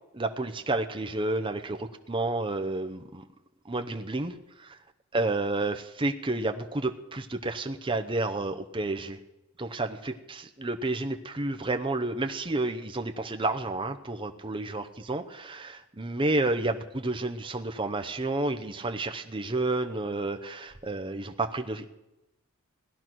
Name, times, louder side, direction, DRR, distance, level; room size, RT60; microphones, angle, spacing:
voice 1, 0.1-3.2 3.7-4.8 5.1-9.2 9.6-21.9, right 2 dB, 25° right, 6 dB, 0.8 m, -30 dB
17.0 x 10.5 x 6.1 m, 0.95 s
head